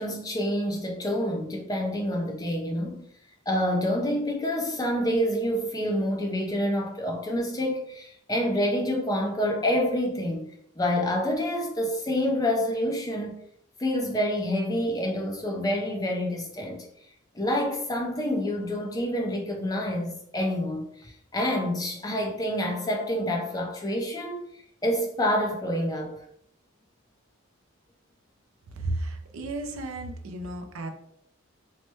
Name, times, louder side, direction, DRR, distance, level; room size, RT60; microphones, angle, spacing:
voice 1, 0.0-3.1 3.5-13.4 13.8-16.9 17.3-24.4 24.8-26.2, equal, 15° left, 0.4 m, -27 dB
voice 2, 28.7-30.9, right 2 dB, 70° right, 0.5 m, -33 dB
3.1 x 2.1 x 3.0 m
head